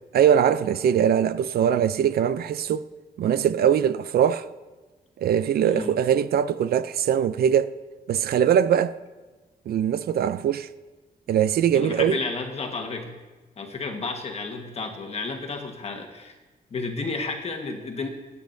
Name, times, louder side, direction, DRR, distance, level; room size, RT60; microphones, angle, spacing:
voice 1, 0.1-2.8 3.2-4.4 5.2-7.7 8.1-8.9 9.7-10.7 11.3-12.2, right 9 dB, 70° right, 0.4 m, -21 dB
voice 2, 5.6-5.9 11.7-13.2 13.6-16.3 16.7-18.1, left 3 dB, 40° left, 1.3 m, -32 dB
24.5 x 8.3 x 2.6 m
wide cardioid pair, 180°, 16 cm